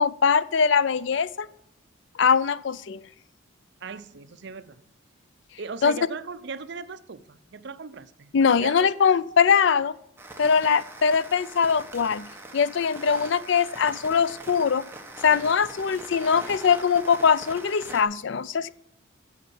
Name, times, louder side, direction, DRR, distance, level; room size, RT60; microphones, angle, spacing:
voice 1, 0.0-1.5 2.2-3.0 5.8-5.9 8.3-10.0 10.4-14.8 15.2-18.7, left 6 dB, 60° left, 0.4 m, -22 dB
voice 2, 3.8-4.8 5.6-8.3 8.6-8.9, right 4 dB, 55° right, 0.6 m, -38 dB
sound 1, 10.2-18.0, right 2 dB, 10° right, 1.2 m, -42 dB
8.7 x 7.9 x 7.0 m
head